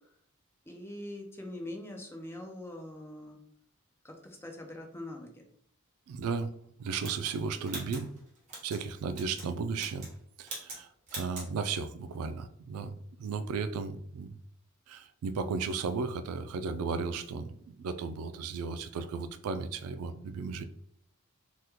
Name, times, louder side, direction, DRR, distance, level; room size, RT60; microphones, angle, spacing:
voice 1, 0.7-3.4 4.0-5.4, left 1 dB, 10° left, 2 dB, 0.4 m, -43 dB
voice 2, 6.1-6.5 6.8-8.1 8.6-10.1 10.4-14.3 14.9-20.6, right 5 dB, 85° right, 11 dB, 0.3 m, -35 dB
sound 1, 7.0-8.8 9.1-9.5 9.7-10.2 10.4-10.8 11.1-11.5, right 2 dB, 35° right, 1.0 m, -42 dB
2.9 x 2.1 x 3.4 m, 0.65 s
head